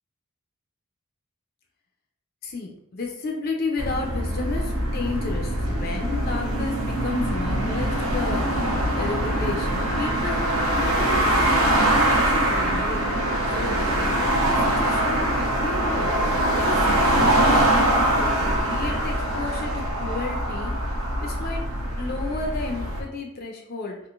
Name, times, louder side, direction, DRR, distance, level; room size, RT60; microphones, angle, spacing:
voice 1, 2.4-13.0 13.5-17.6 18.2-21.7 22.0-24.0, left 3 dB, 45° left, 1 dB, 0.4 m, -33 dB
sound 1, 3.8-23.0, right 1 dB, 85° right, 0.8 m, -23 dB
3.7 x 2.5 x 2.4 m, 0.79 s
head